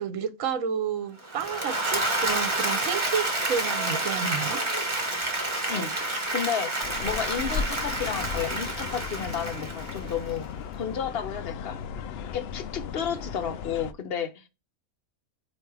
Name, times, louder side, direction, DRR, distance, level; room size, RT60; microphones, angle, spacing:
voice 1, 0.0-4.6, right 7 dB, 65° right, 1.1 m, -31 dB
Applause / Crowd, 1.2-10.4, right 2 dB, 20° right, 1.3 m, -29 dB
voice 2, 5.7-6.7 7.0-10.5 10.8-11.8 12.3-14.4, left 7 dB, 50° left, 0.9 m, -32 dB
sound 1, 6.8-13.9, left 6 dB, 70° left, 0.6 m, -36 dB
8.2 x 2.7 x 4.7 m
omnidirectional pair, 1.5 m